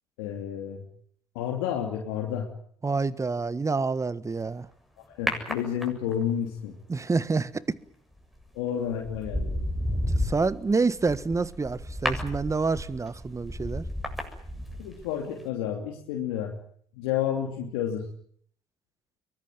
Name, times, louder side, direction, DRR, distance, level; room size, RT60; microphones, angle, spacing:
voice 1, 0.2-0.8 1.3-2.5 5.2-6.7 8.5-9.6 14.8-16.5 16.9-18.1, left 9 dB, 75° left, 3.0 m, -30 dB
voice 2, 2.8-4.7 6.9-7.6 10.2-13.9, right 4 dB, 25° right, 1.5 m, -27 dB
sound 1, 5.3-6.3 8.2-8.4 8.9-15.1 15.4-15.5, left 1 dB, ahead, 7.6 m, -32 dB
23.5 x 19.5 x 9.4 m
hypercardioid pair, 60°, 13 cm